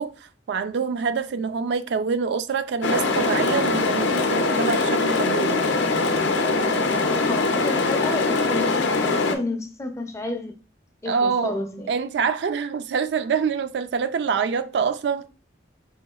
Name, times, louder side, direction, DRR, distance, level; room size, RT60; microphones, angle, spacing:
voice 1, 0.0-5.6 11.1-11.6 11.9-15.3, right 5 dB, 65° right, 0.3 m, -25 dB
sound 1, 2.8-9.4, left 3 dB, 70° left, 0.5 m, -22 dB
voice 2, 7.1-10.5 11.0-11.9, left 2 dB, 15° left, 0.4 m, -31 dB
4.8 x 2.9 x 2.3 m
head